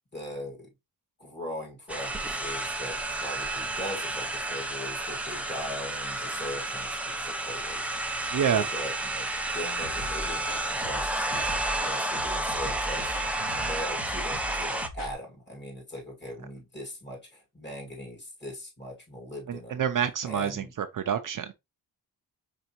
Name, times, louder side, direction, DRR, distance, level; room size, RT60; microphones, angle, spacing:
voice 1, 0.1-0.7 1.2-7.8 8.3-9.3 9.5-19.8 20.2-20.7, left 1 dB, 25° left, 1.9 m, -40 dB
sound 1, 1.9-14.9, right 2 dB, 5° right, 0.5 m, -31 dB
voice 2, 8.3-8.7 13.4-13.7 19.5-21.5, right 8 dB, 50° right, 0.5 m, -28 dB
sound 2, 9.8-15.1, equal, 55° left, 2.8 m, -40 dB
5.2 x 3.4 x 2.9 m
wide cardioid pair, 140°, 41 cm